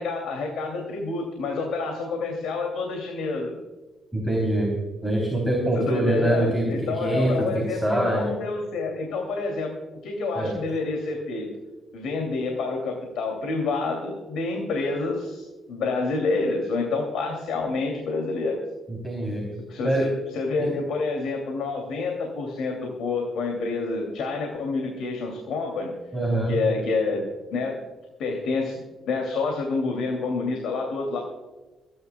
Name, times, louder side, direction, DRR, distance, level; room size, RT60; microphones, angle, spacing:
voice 1, 0.0-3.6 5.7-9.7 10.0-11.5 11.9-18.6 19.7-25.9 26.5-27.8 28.2-31.2, left 3 dB, 80° left, 1 dB, 2.7 m, -28 dB
voice 2, 4.1-4.8 5.0-6.7 7.0-8.3 10.4-10.6 18.9-19.5 19.8-20.1 20.6-20.7 26.1-26.6, right 1 dB, 5° left, -1 dB, 3.6 m, -24 dB
28.0 x 11.0 x 2.3 m, 1.2 s
cardioid pair, 90°, 0 cm